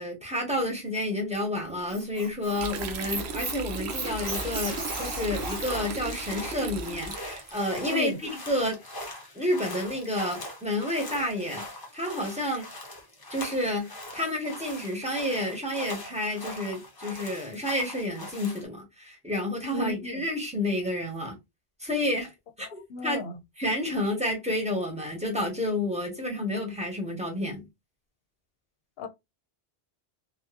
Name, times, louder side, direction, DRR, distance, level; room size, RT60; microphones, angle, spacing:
voice 1, 0.0-8.8 9.3-11.6 11.9-12.7 13.3-21.4 21.8-22.3 22.6-22.7 23.0-23.2 23.6-27.6, left 1 dB, 5° right, 1.1 m, -30 dB
Squeak, 1.7-5.9, right 3 dB, 55° right, 1.2 m, -36 dB
sound 1, 2.6-7.8, right 3 dB, 85° right, 0.9 m, -36 dB
sound 2, 3.8-18.6, left 1 dB, 25° left, 0.6 m, -41 dB
voice 2, 19.7-20.2 22.9-23.3 29.0-29.1, left 3 dB, 65° left, 0.8 m, -33 dB
3.2 x 2.6 x 2.4 m
omnidirectional pair, 1.1 m